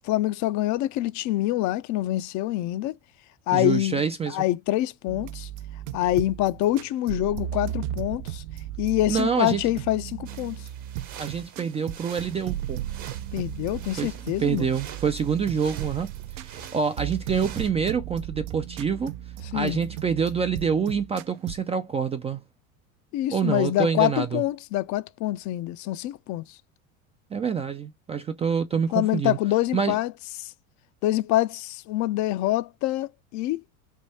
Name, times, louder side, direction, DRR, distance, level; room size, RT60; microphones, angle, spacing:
voice 1, 0.1-2.9 3.5-4.0 4.3-5.5 5.9-8.4 8.8-10.7 13.3-14.7 19.5-19.8 23.1-26.6 28.9-30.1 30.4-30.5 31.0-33.6, left 15 dB, 45° left, 0.5 m, -26 dB
voice 2, 3.5-4.4 9.1-9.6 11.2-12.8 14.0-14.1 14.4-16.1 16.4-19.1 19.5-22.4 23.3-24.4 27.3-29.4 29.7-30.0, right 6 dB, 15° right, 0.3 m, -26 dB
sound 1, 5.1-21.6, right 12 dB, 65° right, 0.6 m, -36 dB
sound 2, 10.3-17.7, right 8 dB, 50° right, 1.0 m, -46 dB
3.4 x 2.6 x 4.1 m
hypercardioid pair, 100°, 40 cm